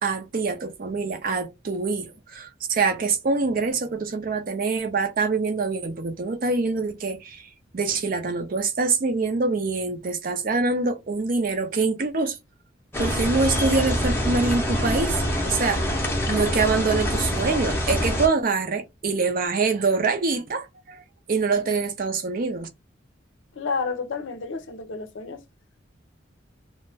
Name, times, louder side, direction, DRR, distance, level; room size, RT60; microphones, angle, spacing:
voice 1, 0.0-7.5 7.7-12.4 13.0-15.2 15.4-21.0 21.3-22.7, right 4 dB, 45° right, 0.5 m, -25 dB
sound 1, 12.9-18.3, equal, 10° left, 0.6 m, -25 dB
voice 2, 23.6-25.4, left 4 dB, 80° left, 0.5 m, -30 dB
2.4 x 2.1 x 3.3 m
head